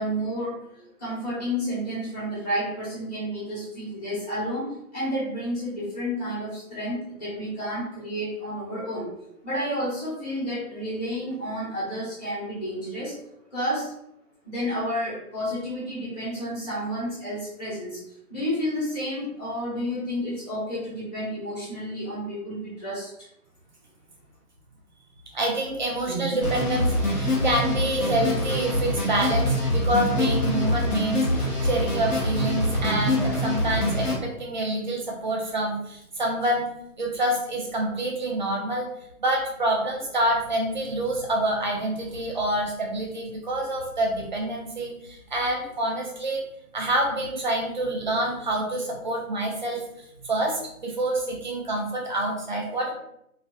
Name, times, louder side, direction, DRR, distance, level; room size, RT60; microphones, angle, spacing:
voice 1, 0.0-9.1 9.4-13.2 13.5-13.9 14.4-18.0 18.3-23.3, equal, 25° left, -11 dB, 1.0 m, -31 dB
voice 2, 25.3-36.7 37.0-38.9 39.2-46.4 46.7-49.8 50.2-52.9, right 1 dB, 35° right, -1 dB, 0.5 m, -27 dB
sound 1, 26.4-34.2, left 1 dB, 85° left, 1.0 m, -25 dB
2.6 x 2.3 x 2.2 m, 0.77 s
hypercardioid pair, 150°, 44 cm